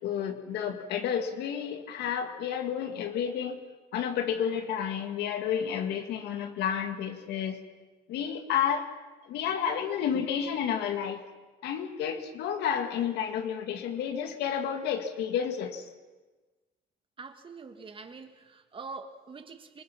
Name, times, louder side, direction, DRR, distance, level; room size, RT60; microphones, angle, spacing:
voice 1, 0.0-3.6 3.9-7.6 8.1-8.8 9.2-11.2 11.6-15.9, left 8 dB, 80° left, 2.2 m, -31 dB
voice 2, 17.2-19.8, right 4 dB, 30° right, 1.9 m, -44 dB
28.0 x 20.0 x 5.9 m
cardioid pair, 110°, 17 cm